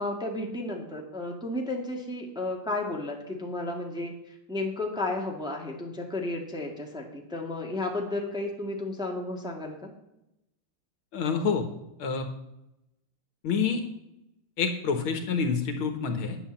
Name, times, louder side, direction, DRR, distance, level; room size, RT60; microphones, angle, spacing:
voice 1, 0.0-4.1 4.5-9.9, left 2 dB, ahead, 0 dB, 1.6 m, -33 dB
voice 2, 11.1-11.7 12.0-12.3 13.4-13.8 14.6-16.4, left 5 dB, 75° left, 6 dB, 2.1 m, -27 dB
9.6 x 8.1 x 7.3 m, 0.86 s
omnidirectional pair, 2.4 m